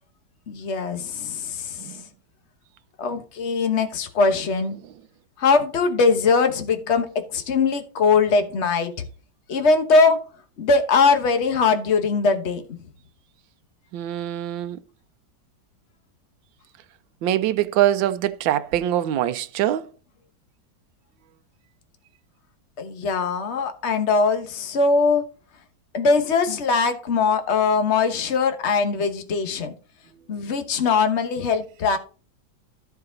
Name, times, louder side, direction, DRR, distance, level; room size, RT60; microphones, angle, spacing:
voice 1, 0.5-2.0 3.0-4.7 5.4-9.0 9.5-10.2 10.6-12.6 22.8-25.2 25.9-29.7 30.3-32.0, left 4 dB, 40° left, 1.3 m, -21 dB
voice 2, 13.9-14.8 17.2-19.9, right 12 dB, 80° right, 1.4 m, -23 dB
13.0 x 4.8 x 3.9 m
omnidirectional pair, 2.0 m